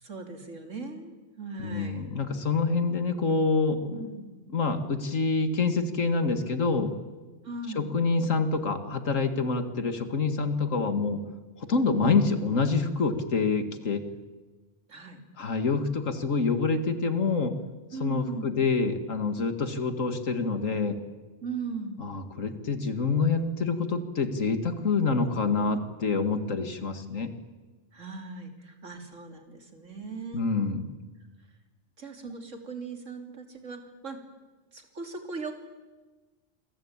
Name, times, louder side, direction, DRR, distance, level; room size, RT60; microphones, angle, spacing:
voice 1, 0.0-2.1 3.9-4.4 7.4-7.9 11.9-12.2 14.9-15.2 17.9-18.5 21.4-22.0 27.9-30.5 32.0-34.2 34.7-35.5, right 4 dB, 75° right, 5 dB, 3.5 m, -39 dB
voice 2, 1.6-4.1 4.5-6.9 7.7-11.2 11.6-14.0 15.4-17.5 18.0-21.0 22.0-27.3 30.3-30.9, left 4 dB, 90° left, 9 dB, 2.4 m, -26 dB
27.0 x 22.5 x 8.9 m, 1.3 s
omnidirectional pair, 1.3 m